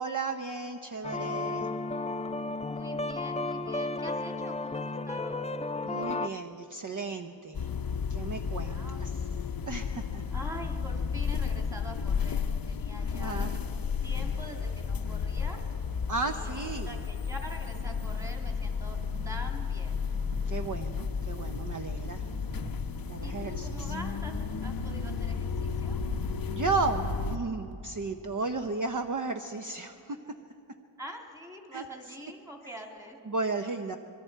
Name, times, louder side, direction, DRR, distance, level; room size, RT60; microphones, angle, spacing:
voice 1, 0.0-1.7 5.8-7.7 8.1-9.2 9.7-10.2 13.0-13.6 16.1-17.0 20.5-22.2 23.1-23.9 26.5-30.2 31.7-31.8 33.3-34.0, right 3 dB, 40° right, 6 dB, 0.7 m, -34 dB
sound 1, 1.0-6.3, left 2 dB, 15° left, 0.4 m, -33 dB
voice 2, 2.7-5.4 8.6-9.1 10.3-15.6 16.2-19.0 19.2-20.1 23.2-26.0 31.0-33.2, right 1 dB, 5° right, 2 dB, 2.2 m, -45 dB
sound 2, 7.5-27.4, left 6 dB, 45° left, 0.7 m, -33 dB
sound 3, 13.1-28.2, right 4 dB, 70° right, 1.0 m, -44 dB
25.5 x 22.5 x 4.6 m, 2.9 s
wide cardioid pair, 115°, 48 cm